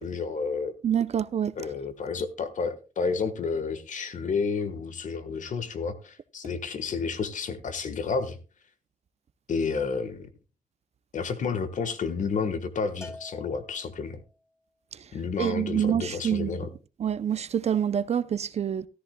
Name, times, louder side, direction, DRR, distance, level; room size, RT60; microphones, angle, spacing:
voice 1, 0.0-0.7 1.6-8.4 9.5-10.3 11.1-14.2 15.1-16.7, left 5 dB, 55° left, 1.3 m, -30 dB
voice 2, 0.8-1.6 14.9-15.1 15.4-16.6 17.0-18.9, right 9 dB, 45° right, 0.5 m, -27 dB
Bell, 13.0-14.4, left 2 dB, 20° left, 1.1 m, -46 dB
13.5 x 13.5 x 2.2 m
wide cardioid pair, 155°, 15 cm